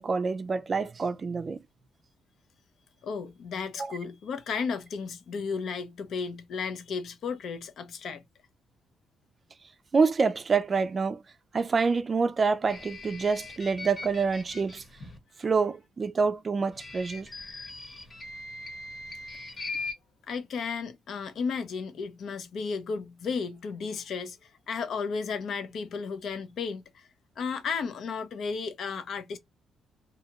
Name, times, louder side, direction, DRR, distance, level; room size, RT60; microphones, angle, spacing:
voice 1, 0.0-1.6 3.8-3.9 9.9-11.2 11.5-14.8 15.4-17.3, right 4 dB, 35° right, 0.4 m, -27 dB
voice 2, 3.0-8.2 20.3-27.1 27.4-29.4, left 5 dB, 65° left, 0.5 m, -34 dB
sound 1, 12.6-15.2 16.7-19.9, left 3 dB, 40° left, 1.0 m, -40 dB
2.7 x 2.2 x 2.8 m
cardioid pair, 90°, 0 cm